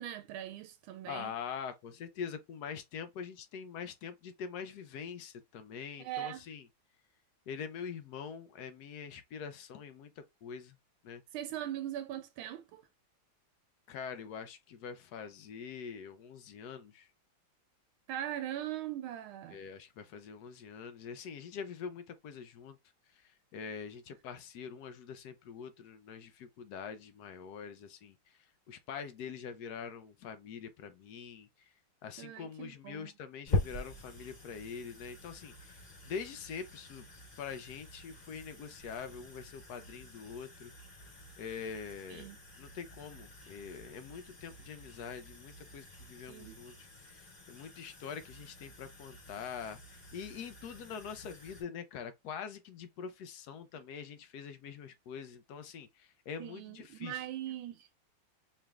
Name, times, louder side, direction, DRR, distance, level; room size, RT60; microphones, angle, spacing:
voice 1, 0.0-1.3 6.0-6.4 11.3-12.9 18.1-19.6 32.2-33.1 42.1-42.4 46.3-46.6 56.4-57.9, right 12 dB, 85° right, 1.4 m, -40 dB
voice 2, 1.1-6.6 7.5-10.1 10.4-10.7 11.0-11.2 13.9-17.1 19.5-22.8 23.5-28.2 28.7-31.5 32.0-35.8 36.1-37.1 37.4-40.7 41.4-42.3 42.6-57.2, left 6 dB, 75° left, 0.9 m, -44 dB
sound 1, 33.5-51.6, left 2 dB, 25° left, 1.0 m, -44 dB
4.7 x 3.2 x 2.3 m
omnidirectional pair, 2.2 m